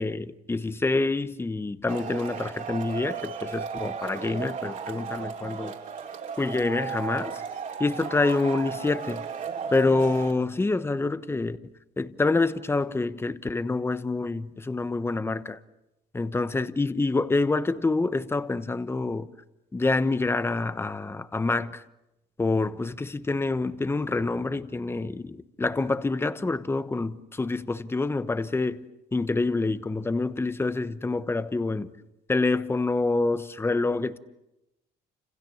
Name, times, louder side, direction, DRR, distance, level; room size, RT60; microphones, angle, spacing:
voice 1, 0.0-5.8 6.4-7.4 7.8-9.2 9.7-11.6 12.0-15.6 16.1-19.3 19.7-21.8 22.4-31.9 32.3-34.2, left 3 dB, 15° left, 1.1 m, -27 dB
Male speech man speaking / Shout / Clapping, 1.9-10.3, right 6 dB, 50° right, 4.1 m, -35 dB
29.5 x 27.5 x 7.2 m
cardioid pair, 110°, 17 cm